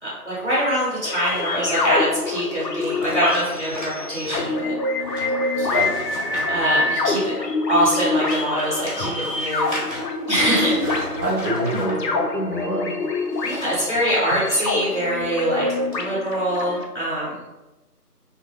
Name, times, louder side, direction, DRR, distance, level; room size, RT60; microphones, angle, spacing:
voice 1, 0.0-4.7 6.5-7.3 7.7-9.7 10.3-10.7 13.4-15.7 15.9-17.4, equal, 45° right, -9 dB, 1.3 m, -23 dB
sound 1, 1.0-16.8, left 3 dB, 90° left, 0.6 m, -26 dB
sound 2, 1.3-7.4 7.9-11.9 13.2-14.6 15.0-15.3 15.9-16.0, equal, 50° left, 1.5 m, -36 dB
voice 2, 5.6-6.6 10.5-13.1, right 1 dB, 80° right, -4 dB, 1.2 m, -27 dB
3.9 x 2.3 x 2.4 m, 1.0 s
figure-of-eight pair, 175°, 48 cm